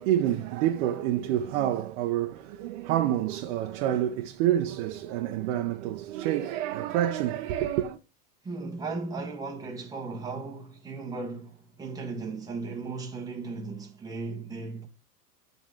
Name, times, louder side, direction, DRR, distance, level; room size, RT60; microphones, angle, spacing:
voice 1, 0.0-8.0, right 12 dB, 50° right, 0.9 m, -28 dB
voice 2, 8.4-14.9, right 3 dB, 10° right, 1.3 m, -36 dB
8.8 x 4.0 x 3.7 m
supercardioid pair, 145°, 46 cm